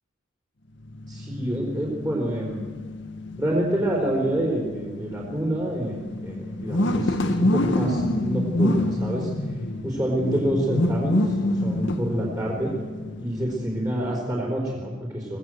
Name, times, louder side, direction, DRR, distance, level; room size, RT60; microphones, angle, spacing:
sound 1, 0.8-14.2, left 1 dB, 55° left, 1.6 m, -27 dB
voice 1, 1.1-2.6 3.4-9.6 9.8-12.8 13.2-15.4, right 1 dB, 15° right, -2 dB, 4.3 m, -27 dB
24.5 x 18.0 x 7.9 m, 1.5 s
head